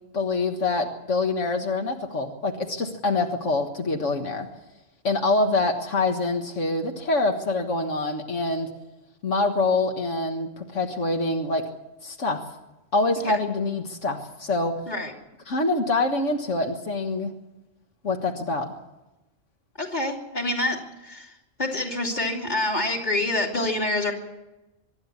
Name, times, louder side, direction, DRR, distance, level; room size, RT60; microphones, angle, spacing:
voice 1, 0.1-4.5 5.0-8.7 9.2-11.6 12.0-12.4 12.9-14.7 15.5-17.3 18.0-18.7, left 2 dB, 80° left, 4 dB, 1.9 m, -25 dB
voice 2, 19.8-21.3 21.6-24.1, left 2 dB, 35° left, 1 dB, 3.0 m, -27 dB
24.5 x 11.5 x 9.7 m, 0.99 s
omnidirectional pair, 1.2 m